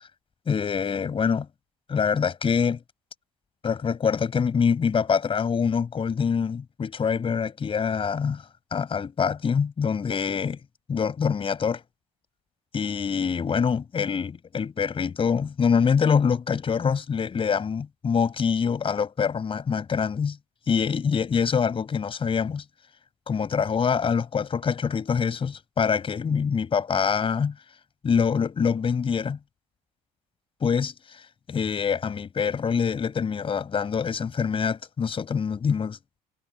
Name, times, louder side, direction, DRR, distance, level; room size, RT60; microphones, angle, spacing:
voice 1, 0.5-1.5 1.9-2.8 3.6-8.4 8.7-10.6 10.9-11.8 12.7-20.4 20.7-22.6 23.3-27.5 28.0-29.4 30.6-36.0, left 6 dB, 35° left, 5.9 m, -25 dB
cardioid pair, 100°, 16 cm